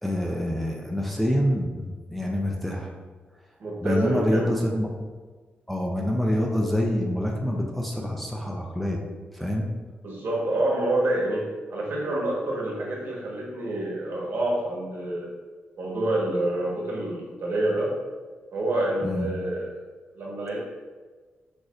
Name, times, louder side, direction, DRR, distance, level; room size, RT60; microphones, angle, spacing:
voice 1, 0.0-2.9 3.8-4.9 5.7-9.0 9.3-9.7 19.0-19.3, equal, 5° left, 0 dB, 0.5 m, -26 dB
voice 2, 3.6-4.5 10.0-15.3 15.8-18.0 18.5-19.7 20.1-20.6, right 1 dB, 65° right, -3 dB, 1.3 m, -27 dB
6.3 x 3.1 x 2.5 m, 1.4 s
cardioid pair, 115°, 4 cm